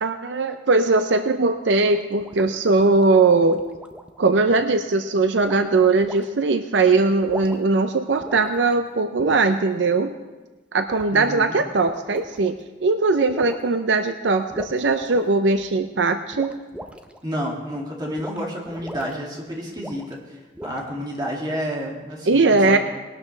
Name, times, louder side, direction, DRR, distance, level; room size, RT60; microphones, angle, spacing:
voice 1, 0.0-3.6 4.2-10.1 10.7-12.6 12.8-16.5 22.3-22.8, right 3 dB, 75° right, 8 dB, 0.6 m, -20 dB
sound 1, 1.9-4.2 5.4-5.7 6.0-6.2 7.1-7.8 8.2-8.7 9.2-9.5 10.9-11.2 11.7-12.6 13.3-13.7 14.5-15.7 16.3-17.2 18.2-18.4 18.7-19.1 19.8-20.2 20.5-21.0, equal, 5° right, 0.6 m, -39 dB
voice 2, 11.1-11.6 17.2-22.8, equal, 25° right, -2 dB, 2.3 m, -30 dB
20.0 x 12.0 x 3.3 m, 1.2 s
head